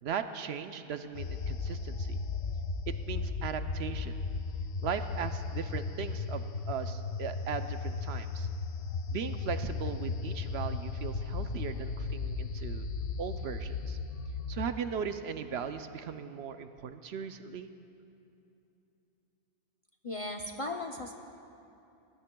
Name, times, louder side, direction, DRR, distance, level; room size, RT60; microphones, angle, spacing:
voice 1, 0.0-2.2 2.9-4.2 4.8-8.5 9.1-12.9 13.2-14.0 14.5-17.7, right 7 dB, 65° right, 9 dB, 0.8 m, -38 dB
sound 1, 1.1-14.7, left 4 dB, 80° left, 1.0 m, -36 dB
voice 2, 20.0-21.1, left 2 dB, 40° left, 3 dB, 0.5 m, -37 dB
20.0 x 19.0 x 2.2 m, 2.8 s
omnidirectional pair, 1.2 m